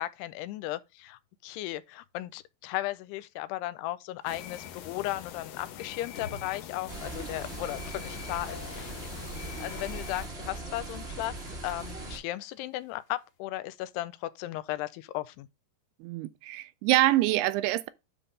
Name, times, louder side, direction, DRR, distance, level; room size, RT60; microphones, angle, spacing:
voice 1, 0.0-8.9 9.6-11.4 11.6-15.5, left 16 dB, 90° left, 2.6 m, -36 dB
sound 1, 4.2-13.4, left 4 dB, 55° left, 1.5 m, -55 dB
sound 2, 4.3-10.3, left 10 dB, 70° left, 2.2 m, -43 dB
sound 3, 6.9-12.2, right 2 dB, 55° right, 0.6 m, -40 dB
voice 2, 16.0-17.9, right 16 dB, 85° right, 2.6 m, -25 dB
10.0 x 3.4 x 5.3 m
omnidirectional pair, 4.6 m